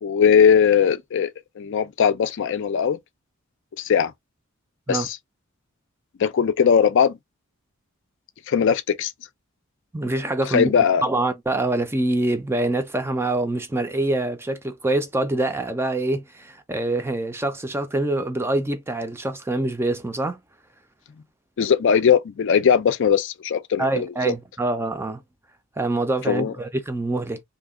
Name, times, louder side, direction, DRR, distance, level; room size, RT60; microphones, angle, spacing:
voice 1, 0.0-1.3 1.6-3.0 3.8-4.1 4.9-5.2 6.2-7.2 8.5-9.1 10.5-11.0 21.6-24.3 26.3-26.5, left 7 dB, 60° left, 0.4 m, -19 dB
voice 2, 9.9-10.7 11.0-20.4 23.8-25.2 25.8-27.4, right 2 dB, 10° right, 0.4 m, -25 dB
2.8 x 2.2 x 3.5 m
head